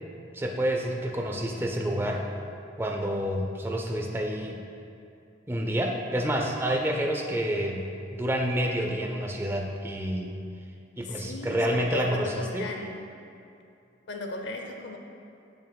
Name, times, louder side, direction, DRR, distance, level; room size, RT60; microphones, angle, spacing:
voice 1, 0.3-2.2 2.8-4.6 5.5-10.3 11.0-12.3 12.5-12.7, equal, 10° right, 2 dB, 0.5 m, -28 dB
voice 2, 11.0-13.1 14.1-15.0, left 2 dB, 65° left, 3 dB, 0.7 m, -36 dB
11.0 x 5.3 x 2.3 m, 2.6 s
head